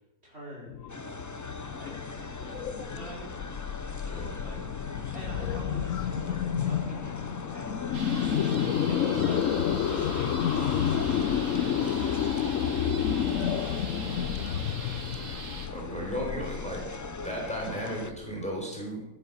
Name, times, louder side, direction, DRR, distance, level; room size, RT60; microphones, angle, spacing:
voice 1, 0.2-3.3 4.4-4.6 5.1-7.1 7.5-7.8 8.2-8.4 8.9-9.4 9.8-12.6 14.0-14.5 15.9-16.4, equal, 45° right, -5 dB, 5.2 m, -46 dB
sound 1, 0.7-18.5, left 8 dB, 70° left, 1.1 m, -30 dB
sound 2, 0.9-18.1, left 3 dB, 30° left, 0.3 m, -42 dB
voice 2, 3.9-4.4 15.7-16.8 17.2-19.0, equal, 5° left, -2 dB, 4.3 m, -35 dB
sound 3, 7.9-15.7, right 3 dB, 65° right, 2.1 m, -42 dB
14.0 x 9.8 x 6.8 m, 0.96 s
omnidirectional pair, 1.5 m